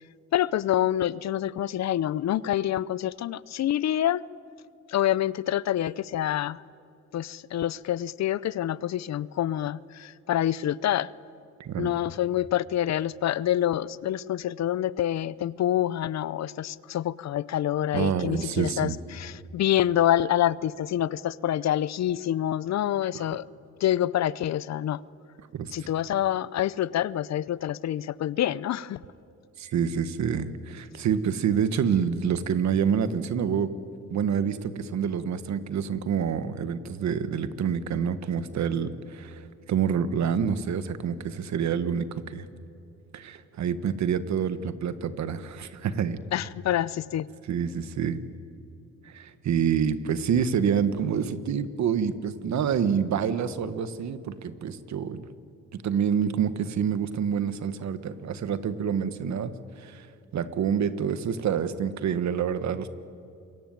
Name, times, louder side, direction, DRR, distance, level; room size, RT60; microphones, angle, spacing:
voice 1, 0.3-4.2 4.9-6.6 7.1-11.1 11.8-23.5 23.8-25.0 25.7-29.0 46.3-47.3, left 12 dB, 60° left, 20 dB, 0.7 m, -27 dB
voice 2, 17.9-19.0 23.1-23.2 25.5-25.7 29.6-33.7 34.1-42.5 43.1-46.2 47.5-48.2 49.0-55.3 55.7-59.5 59.8-60.1 60.3-62.9, right 7 dB, 65° right, 12 dB, 1.6 m, -27 dB
27.5 x 23.0 x 9.2 m, 2.5 s
cardioid pair, 90°, 30 cm